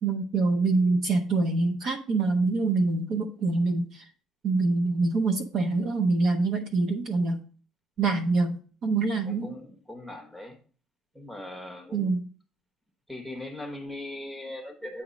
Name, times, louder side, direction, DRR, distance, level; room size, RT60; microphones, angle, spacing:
voice 1, 0.0-4.0 4.4-7.4 8.0-8.6 8.8-9.6 11.9-12.2, right 3 dB, 40° right, 6 dB, 0.7 m, -25 dB
voice 2, 9.4-10.6 11.1-12.1 13.1-15.0, left 1 dB, 5° right, 4 dB, 0.9 m, -39 dB
8.5 x 3.0 x 5.1 m, 0.41 s
cardioid pair, 175°, 0 cm